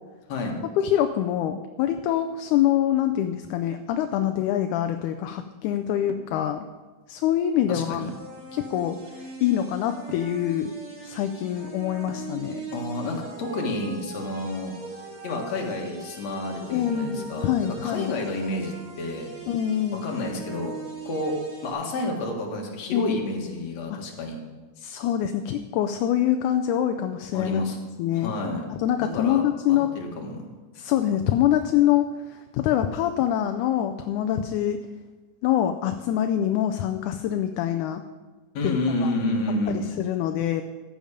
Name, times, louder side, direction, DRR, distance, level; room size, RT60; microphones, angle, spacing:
voice 1, 0.8-6.7 7.1-8.1 8.5-10.7 11.0-12.7 16.7-18.1 19.5-20.0 22.9-23.2 23.9-24.0 24.8-27.6 28.0-28.4 28.7-29.9 30.8-34.8 35.4-38.0 38.6-39.1 39.7-40.6, left 11 dB, 80° left, 8 dB, 2.1 m, -25 dB
sound 1, 6.1-6.4 8.1-8.5 10.1-10.4 12.1-12.5, right 6 dB, 65° right, 1.6 m, -43 dB
voice 2, 7.7-8.1 12.7-14.7 15.2-19.3 19.9-20.7 21.0-21.3 21.6-24.4 27.3-27.8 28.1-28.6 29.0-30.4 38.5-39.9, left 2 dB, 60° left, 1 dB, 2.8 m, -30 dB
sound 2, 8.0-21.7, right 4 dB, 30° right, 3.1 m, -41 dB
14.5 x 8.8 x 5.1 m, 1.3 s
omnidirectional pair, 3.6 m